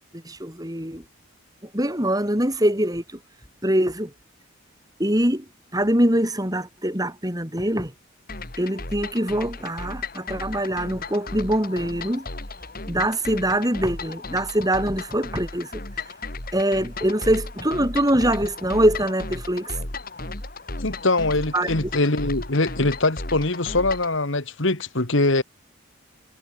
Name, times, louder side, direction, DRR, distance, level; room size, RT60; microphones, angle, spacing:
voice 1, 0.1-1.0 1.7-3.0 3.6-4.1 5.0-5.4 5.7-7.9 8.6-12.3 12.9-15.8 16.5-19.8 21.5-21.7, right 1 dB, 15° right, 7.7 m, -23 dB
sound 1, 8.3-24.2, left 2 dB, 45° left, 4.2 m, -35 dB
voice 2, 20.8-25.4, left 2 dB, 60° left, 2.0 m, -22 dB
head